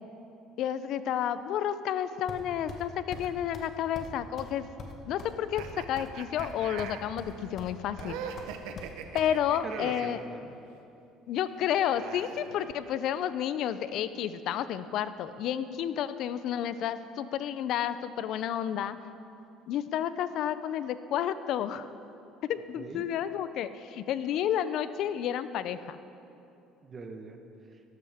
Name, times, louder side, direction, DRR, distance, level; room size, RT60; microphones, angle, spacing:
voice 1, 0.6-4.6 5.0-8.2 9.1-10.2 11.3-19.0 19.7-21.9 22.5-26.0, left 10 dB, 65° left, 13 dB, 0.5 m, -31 dB
sound 1, 2.3-2.8 3.1-3.3 3.5-3.7 4.0-4.1 4.4-4.5 4.8-6.1 6.4-6.9 7.2-7.7 8.0-9.3, left 4 dB, 50° left, 1.3 m, -43 dB
sound 2, 5.6-10.2 11.4-13.2, right 8 dB, 80° right, 0.7 m, -43 dB
voice 2, 9.3-10.5 22.8-23.1 26.8-27.8, right 3 dB, 35° right, 5 dB, 1.2 m, -42 dB
12.5 x 12.5 x 3.6 m, 2.7 s
supercardioid pair, 95°, 0 cm